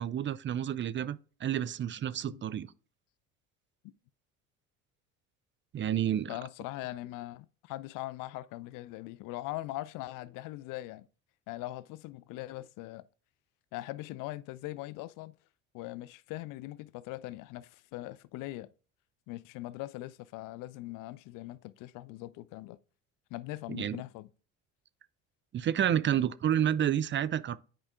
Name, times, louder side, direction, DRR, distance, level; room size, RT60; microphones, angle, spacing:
voice 1, 0.0-2.7 5.7-6.3 23.7-24.0 25.5-27.6, right 10 dB, 35° right, 0.5 m, -30 dB
voice 2, 6.3-11.1 11.5-13.0 13.7-15.3 15.7-18.7 19.3-22.8 23.3-24.3, left 17 dB, 70° left, 0.6 m, -41 dB
8.8 x 5.0 x 3.6 m
supercardioid pair, 75°, 34 cm